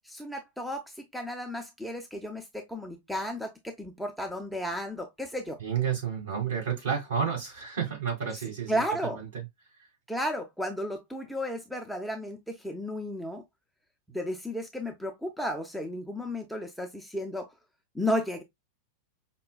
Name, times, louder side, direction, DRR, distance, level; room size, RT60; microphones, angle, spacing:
voice 1, 0.1-5.6 8.7-9.2 10.1-13.4 14.1-17.5 17.9-18.4, equal, ahead, 0.6 m, -33 dB
voice 2, 5.6-9.3, right 7 dB, 60° right, 2.2 m, -31 dB
5.3 x 2.2 x 2.2 m
figure-of-eight pair, 90°, 0 cm